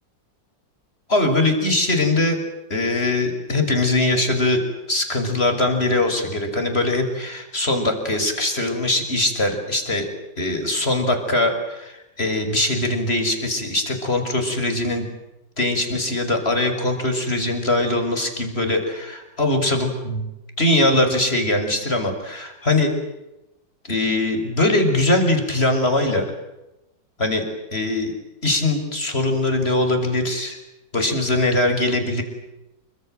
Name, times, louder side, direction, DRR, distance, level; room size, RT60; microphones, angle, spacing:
voice 1, 1.1-2.4 2.7-4.6 4.9-10.0 10.4-15.1 15.6-20.2 20.6-22.9 23.8-26.3 27.2-27.4 27.7-28.1 28.4-30.6 30.9-32.2, left 2 dB, 30° left, 6 dB, 6.4 m, -21 dB
28.5 x 26.5 x 7.9 m, 0.94 s
omnidirectional pair, 2.0 m